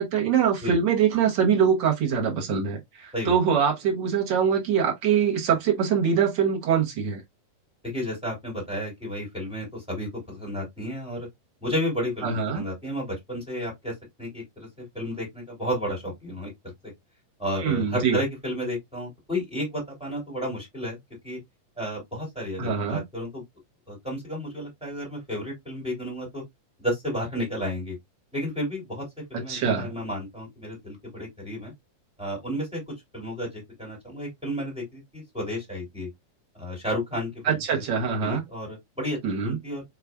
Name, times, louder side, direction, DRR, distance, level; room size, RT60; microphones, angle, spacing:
voice 1, 0.0-7.2 12.2-12.6 17.6-18.2 22.6-23.0 29.3-29.9 37.4-38.4 39.2-39.6, right 7 dB, 75° right, 1.0 m, -23 dB
voice 2, 7.8-11.3 11.6-16.5 16.8-16.9 17.4-21.0 21.2-21.4 21.8-23.4 23.9-26.4 26.8-28.0 28.3-29.0 29.3-31.7 32.2-32.8 33.1-36.1 36.5-37.8 38.2-39.8, equal, ahead, 2.3 m, -32 dB
4.9 x 3.6 x 2.2 m
omnidirectional pair, 3.7 m